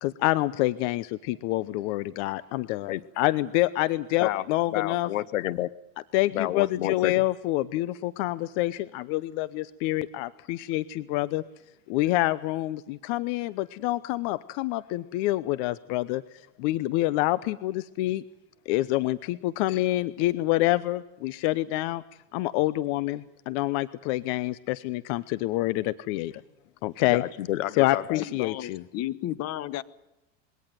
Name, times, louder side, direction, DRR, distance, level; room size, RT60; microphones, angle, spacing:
voice 1, 0.0-5.1 6.1-11.4 11.9-16.2 16.6-18.2 18.7-22.0 22.3-26.3 26.8-27.2 27.7-28.8, left 17 dB, 60° left, 0.9 m, -27 dB
voice 2, 4.2-5.7 6.3-7.2 27.1-28.2, left 14 dB, 90° left, 1.0 m, -30 dB
voice 3, 28.2-29.8, left 13 dB, 40° left, 1.1 m, -33 dB
22.0 x 18.0 x 9.4 m
supercardioid pair, 125°, 38 cm